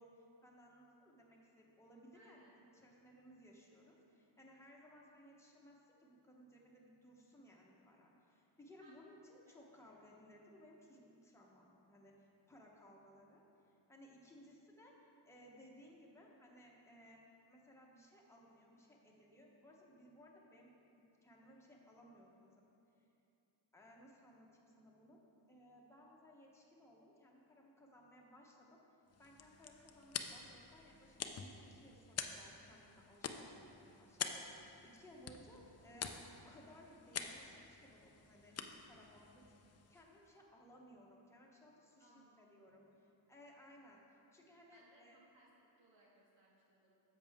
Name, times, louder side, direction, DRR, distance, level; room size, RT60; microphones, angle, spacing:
voice 1, 0.0-17.2 17.5-22.5 23.7-25.2 25.5-28.8 29.2-34.2 34.5-39.4 39.9-42.9 43.3-45.2, equal, 5° left, -3 dB, 1.0 m, -61 dB
voice 2, 2.1-2.5 8.8-9.0 9.5-10.0 42.0-42.9 44.7-47.0, right 2 dB, 75° right, -5 dB, 2.1 m, -68 dB
sound 1, 29.1-40.3, left 6 dB, 35° left, 0.4 m, -48 dB
10.0 x 7.4 x 3.5 m, 2.8 s
wide cardioid pair, 155°, 46 cm